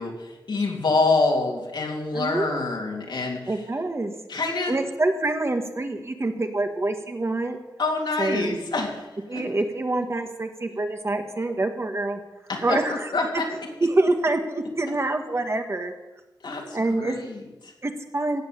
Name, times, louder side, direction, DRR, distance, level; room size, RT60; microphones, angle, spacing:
voice 1, 0.0-3.5 4.3-4.7 7.8-9.4 12.5-13.5 16.4-17.7, left 3 dB, 80° left, 0 dB, 3.1 m, -26 dB
voice 2, 2.1-2.5 3.5-4.1 4.7-7.6 8.2-8.5 9.3-12.2 12.6-13.1 13.5-15.9 16.7-17.2 17.8-18.4, right 2 dB, 35° right, 6 dB, 1.5 m, -26 dB
16.5 x 7.3 x 8.8 m, 1.1 s
wide cardioid pair, 120°, 8 cm